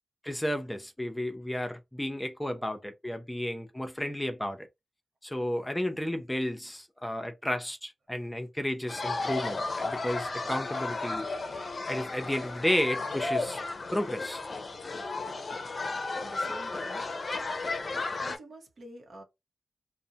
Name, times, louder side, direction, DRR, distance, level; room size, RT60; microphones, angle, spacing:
voice 1, 0.2-4.7 5.2-11.4 11.9-13.6 13.9-14.4, left 1 dB, 10° left, 0.6 m, -32 dB
sound 1, 8.9-18.4, left 3 dB, 55° left, 0.5 m, -34 dB
voice 2, 15.9-17.1 18.2-19.2, right 1 dB, 65° right, 0.8 m, -48 dB
2.5 x 2.1 x 2.8 m
cardioid pair, 50°, 0 cm